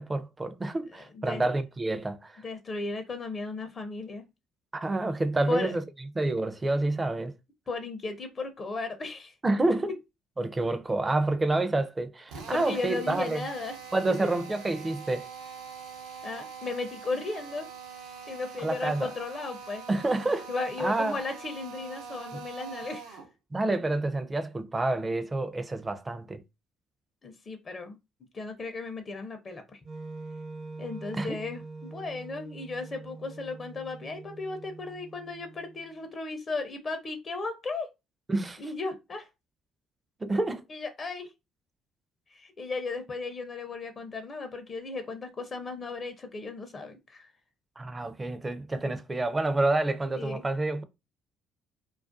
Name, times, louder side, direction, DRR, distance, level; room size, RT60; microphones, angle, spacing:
voice 1, 0.0-2.4 4.7-7.3 9.4-9.9 10.4-13.5 13.9-15.3 18.6-19.1 19.9-20.5 20.8-21.2 22.3-22.4 23.5-26.4 31.1-31.4 38.3-38.6 40.2-40.6 47.8-50.8, right 2 dB, 25° right, 0.4 m, -28 dB
voice 2, 0.9-1.4 2.4-4.3 5.5-5.8 7.7-9.3 12.3-13.8 16.2-17.7 18.3-19.8 20.5-23.2 27.2-28.0 28.3-29.8 30.8-37.9 38.6-39.3 40.7-41.3 42.3-47.3 50.1-50.4, left 3 dB, 40° left, 0.5 m, -35 dB
Drill, 12.3-23.3, right 6 dB, 85° right, 0.5 m, -44 dB
Wind instrument woodwind instrument, 29.8-35.9, right 3 dB, 60° right, 1.0 m, -44 dB
2.3 x 2.2 x 2.5 m
supercardioid pair, 65°, 0 cm